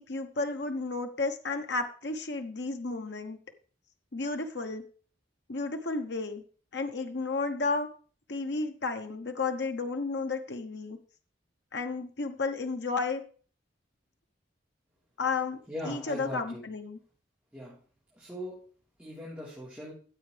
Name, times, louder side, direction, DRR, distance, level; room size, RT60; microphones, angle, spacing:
voice 1, 0.0-3.4 4.1-4.8 5.5-6.4 6.7-7.9 8.3-11.0 11.7-13.2 15.2-17.0, left 3 dB, 65° left, 6 dB, 1.0 m, -32 dB
voice 2, 15.7-16.6 17.5-17.8 18.1-18.6 19.0-19.9, equal, 5° right, -8 dB, 3.6 m, -40 dB
14.0 x 7.9 x 3.3 m, 0.41 s
head